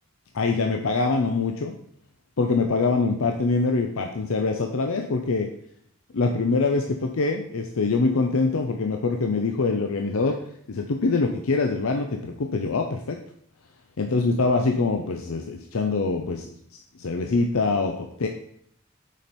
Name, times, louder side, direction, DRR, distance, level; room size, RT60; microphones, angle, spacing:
voice 1, 0.3-1.8 2.4-5.5 6.1-10.4 10.7-13.2 14.0-16.5 17.0-18.3, left 3 dB, 80° left, 4 dB, 0.6 m, -24 dB
7.3 x 5.3 x 4.2 m, 0.68 s
head